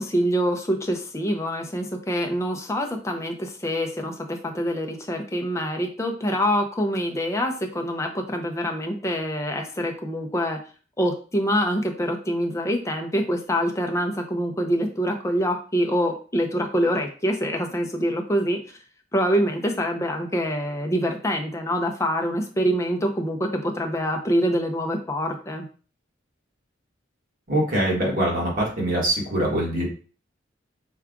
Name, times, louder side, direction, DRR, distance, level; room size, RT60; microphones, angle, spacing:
voice 1, 0.0-10.6 11.0-18.6 19.1-25.7, equal, 15° left, 3 dB, 0.6 m, -25 dB
voice 2, 27.5-29.9, right 1 dB, 45° right, -4 dB, 1.5 m, -23 dB
4.6 x 2.4 x 3.6 m, 0.38 s
head